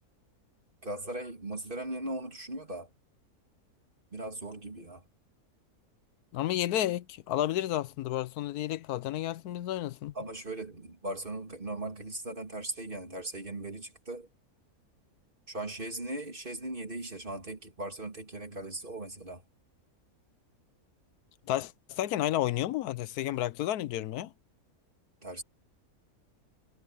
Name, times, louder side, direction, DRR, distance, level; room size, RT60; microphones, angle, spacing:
voice 1, 0.8-2.9 4.1-5.0 10.1-14.3 15.5-19.4 25.2-25.4, right 2 dB, 35° right, 3.0 m, -38 dB
voice 2, 6.3-10.1 21.5-24.3, left 13 dB, 85° left, 1.2 m, -31 dB
omnidirectional pair, 1.6 m